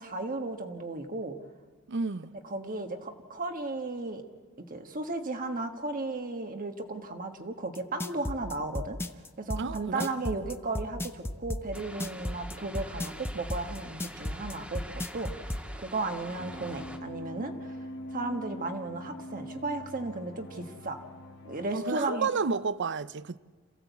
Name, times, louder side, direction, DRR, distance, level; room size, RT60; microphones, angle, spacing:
voice 1, 0.0-1.4 2.3-4.2 4.6-9.0 9.4-17.8 18.1-21.0 21.4-22.3, right 2 dB, 40° right, 1.5 m, -35 dB
voice 2, 1.9-2.3 9.6-10.4 21.7-23.4, right 4 dB, 55° right, 0.6 m, -31 dB
sound 1, 7.7-15.6, left 1 dB, 10° left, 0.8 m, -34 dB
sound 2, 11.7-17.0, equal, 5° right, 1.6 m, -45 dB
sound 3, 16.4-21.7, equal, 55° left, 1.9 m, -43 dB
27.5 x 15.5 x 8.3 m
head